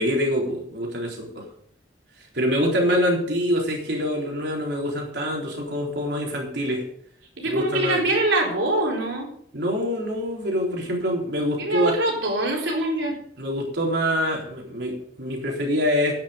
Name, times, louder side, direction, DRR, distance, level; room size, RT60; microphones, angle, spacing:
voice 1, 0.0-1.4 2.3-6.9 7.4-8.0 9.5-12.0 13.4-16.1, equal, 65° right, -1 dB, 3.9 m, -25 dB
voice 2, 7.4-9.3 11.6-13.2, right 2 dB, 85° right, -1 dB, 4.1 m, -24 dB
11.0 x 10.0 x 5.3 m, 0.65 s
head